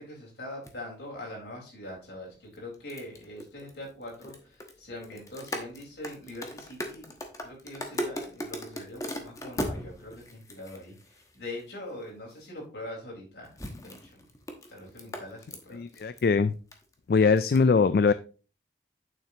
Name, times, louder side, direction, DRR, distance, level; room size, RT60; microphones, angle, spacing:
voice 1, 0.0-7.1 7.4-13.5 13.8-14.2 14.7-15.8, left 1 dB, 70° left, -2 dB, 4.3 m, -43 dB
sound 1, 0.6-0.7 2.5-11.6 12.3-12.4 13.4-16.3 16.5-16.9 17.4-17.6, equal, 20° left, 1.1 m, -38 dB
voice 2, 15.7-16.5 17.1-18.1, left 5 dB, 55° left, 14 dB, 0.3 m, -22 dB
9.1 x 7.4 x 2.9 m, 0.36 s
head